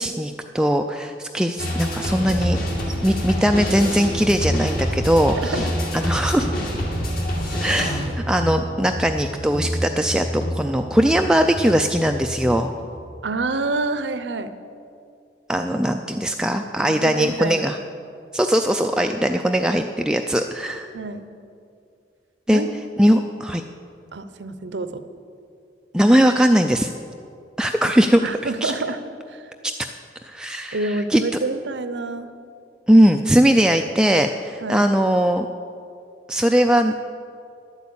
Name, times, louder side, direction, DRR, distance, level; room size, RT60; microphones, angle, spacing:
voice 1, 0.0-2.6 3.0-5.6 5.9-6.5 7.6-8.0 8.3-10.3 10.5-12.7 15.5-17.8 18.3-20.9 22.5-22.6 23.0-23.6 25.9-26.9 27.6-28.2 28.6-28.7 29.8-29.9 30.2-31.2 32.9-35.5 36.3-36.9, equal, 5° right, 4 dB, 0.3 m, -19 dB
sound 1, 1.6-12.9, equal, 55° left, 2.6 m, -26 dB
voice 2, 5.4-5.7 13.2-14.5 17.0-17.7 20.9-21.2 22.5-22.7 24.1-25.0 28.2-29.0 29.3-29.5 30.7-32.3 34.6-34.8, right 3 dB, 75° right, 11 dB, 0.7 m, -27 dB
11.5 x 8.2 x 8.6 m, 2.5 s
head